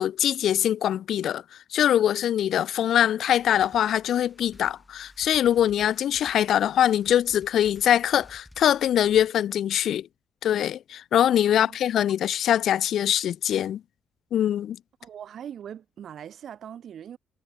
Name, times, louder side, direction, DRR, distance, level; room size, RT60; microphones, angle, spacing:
voice 1, 0.0-1.4 1.7-10.1 10.4-13.8 14.3-14.8, left 10 dB, 70° left, 0.4 m, -23 dB
sound 1, 3.3-9.3, left 1 dB, 5° left, 5.0 m, -55 dB
voice 2, 11.5-11.8 15.0-17.2, right 9 dB, 65° right, 3.0 m, -41 dB
cardioid pair, 90°, 0 cm